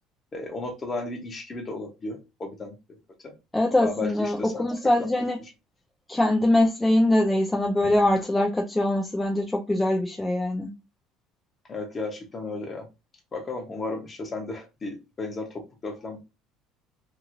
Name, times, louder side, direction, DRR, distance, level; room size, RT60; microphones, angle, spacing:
voice 1, 0.3-2.7 3.2-3.3 3.8-5.1 5.4-5.5 11.7-12.9 13.3-16.2, left 3 dB, 25° left, 0.8 m, -34 dB
voice 2, 3.5-5.4 6.1-10.7, left 1 dB, 10° left, 0.4 m, -23 dB
2.9 x 2.6 x 2.5 m
cardioid pair, 130°, 0 cm